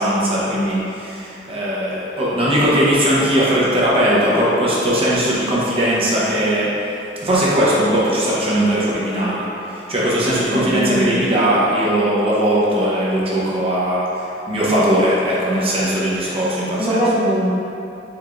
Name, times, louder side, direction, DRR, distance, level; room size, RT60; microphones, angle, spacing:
voice 1, 0.0-6.7 7.2-9.4 9.7-17.0, equal, 30° right, -7 dB, 0.8 m, -19 dB
voice 2, 10.5-11.2 16.8-17.5, right 1 dB, ahead, -10 dB, 0.6 m, -20 dB
4.6 x 3.5 x 2.5 m, 2.9 s
head